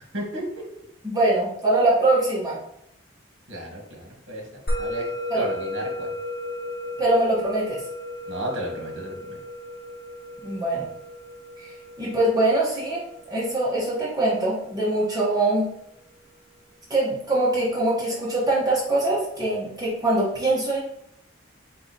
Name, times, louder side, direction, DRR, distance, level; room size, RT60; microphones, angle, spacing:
voice 1, 0.1-0.6 3.5-4.4 4.8-5.0 5.3-6.1 8.3-9.2, right 1 dB, 75° right, -1 dB, 1.2 m, -32 dB
voice 2, 1.0-2.6 5.3-5.5 7.0-7.8 10.4-10.9 11.6-15.7 16.9-20.8, right 2 dB, 20° right, -6 dB, 1.2 m, -23 dB
Musical instrument, 4.7-15.3, left 1 dB, 50° left, 0.8 m, -35 dB
4.2 x 3.0 x 4.0 m, 0.73 s
head